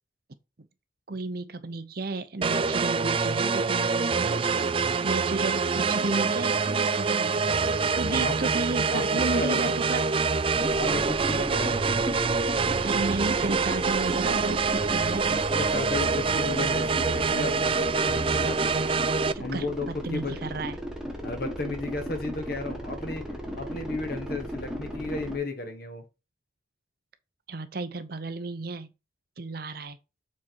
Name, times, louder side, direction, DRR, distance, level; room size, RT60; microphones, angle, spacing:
voice 1, 1.1-10.1 12.8-15.4 19.3-20.8 27.5-28.9 29.4-30.0, right 3 dB, 50° right, 0.7 m, -33 dB
sound 1, 2.4-19.3, right 4 dB, 30° right, 0.3 m, -25 dB
voice 2, 8.9-9.9 10.7-12.0 15.5-18.8 19.4-19.9 20.1-20.4 21.2-23.3 23.6-26.0, left 2 dB, 50° left, 1.4 m, -34 dB
sound 2, 10.6-25.4, equal, 5° right, 1.3 m, -36 dB
7.5 x 4.3 x 4.6 m
head